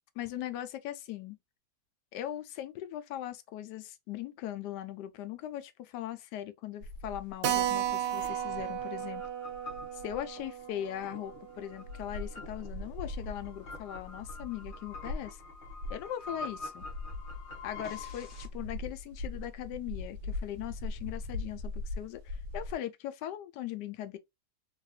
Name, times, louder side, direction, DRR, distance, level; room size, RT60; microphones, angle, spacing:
voice 1, 0.2-1.4 2.1-9.2 9.9-15.4 15.9-16.8 17.6-24.2, left 12 dB, 80° left, 1.2 m, -40 dB
sound 1, 6.8-10.5 11.0-11.1 11.3-11.4 11.7-22.7, left 2 dB, 70° right, 1.2 m, -41 dB
Keyboard (musical), 7.4-12.5 12.8-12.9 13.1-13.2 13.5-13.6 14.2-14.5, right 11 dB, 90° right, 1.2 m, -35 dB
sound 2, 7.7-18.5, left 3 dB, 40° left, 0.8 m, -47 dB
3.3 x 2.4 x 2.7 m
omnidirectional pair, 1.8 m